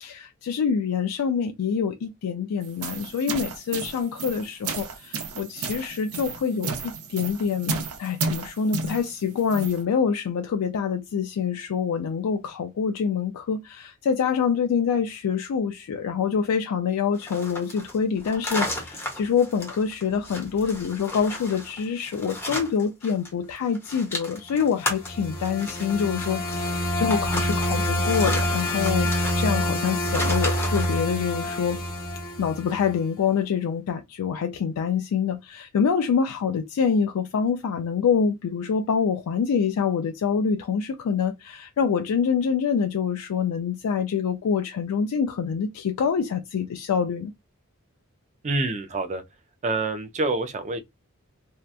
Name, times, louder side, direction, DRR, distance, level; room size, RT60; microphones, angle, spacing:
voice 1, 0.0-31.8 32.4-47.3, left 6 dB, 80° left, 0.3 m, -26 dB
sound 1, 2.6-9.8, right 4 dB, 80° right, 0.7 m, -33 dB
sound 2, 17.2-23.3 23.6-31.0, left 1 dB, 10° left, 0.8 m, -34 dB
sound 3, 24.8-33.0, equal, 40° left, 0.9 m, -27 dB
voice 2, 48.4-49.2 49.6-50.8, right 2 dB, 30° right, 0.4 m, -27 dB
2.7 x 2.2 x 2.3 m
head